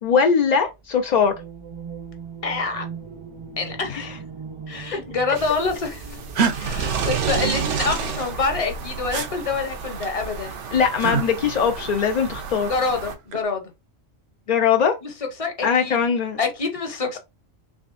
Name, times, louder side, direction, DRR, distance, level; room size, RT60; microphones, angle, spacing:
voice 1, 0.0-1.3 3.9-4.1 6.6-6.7 10.7-12.7 14.5-15.0 15.6-16.4, left 6 dB, 65° left, 0.4 m, -20 dB
sound 1, 1.2-7.2, right 6 dB, 50° right, 0.3 m, -39 dB
voice 2, 2.4-2.9 3.6-4.2 4.7-6.2 6.6-10.6 12.6-13.7 15.0-16.0 16.4-17.2, left 4 dB, 35° left, 0.7 m, -26 dB
sound 2, 5.3-13.1, right 6 dB, 85° right, 1.1 m, -30 dB
sound 3, 6.3-6.6 9.1-9.3 11.0-11.3 13.0-13.5, right 6 dB, 70° right, 0.9 m, -23 dB
3.6 x 3.3 x 2.4 m
omnidirectional pair, 1.2 m